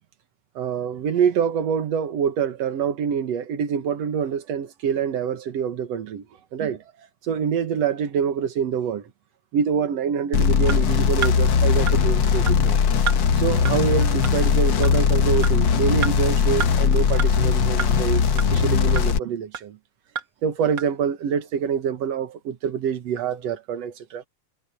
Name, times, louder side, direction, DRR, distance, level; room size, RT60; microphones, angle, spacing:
voice 1, 0.6-6.3 6.5-9.1 9.5-12.8 13.4-19.8 20.4-24.2, right 7 dB, 60° right, 2.3 m, -26 dB
sound 1, 10.3-19.2, left 6 dB, 60° left, 1.2 m, -19 dB
sound 2, 10.7-10.8 11.2-11.4 11.9-12.0 12.5-12.6 13.1-13.2 13.7-13.8 14.2-14.3 14.8-14.9 15.4-15.5 16.0-16.1 16.6-16.7 17.2-17.3 17.8-17.9 18.4-18.5 19.0-19.1 19.5-19.6 20.2-20.3 20.8-20.9, right 8 dB, 45° right, 1.9 m, -28 dB
omnidirectional pair, 3.7 m